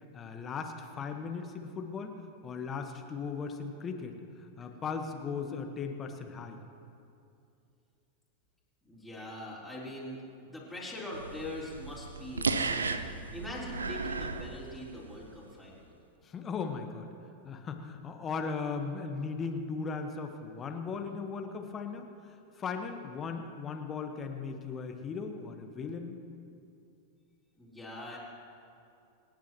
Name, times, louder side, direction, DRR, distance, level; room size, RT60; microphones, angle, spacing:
voice 1, 0.1-2.2 2.4-6.6 16.2-17.1 17.4-22.0 22.6-26.2, left 5 dB, 25° left, 5 dB, 1.3 m, -37 dB
voice 2, 8.8-16.0 27.6-28.2, left 1 dB, 5° left, -7 dB, 4.0 m, -42 dB
sound 1, 11.1-15.2, right 4 dB, 75° right, 0.6 m, -35 dB
27.5 x 10.0 x 3.1 m, 2.6 s
figure-of-eight pair, 90°, 0 cm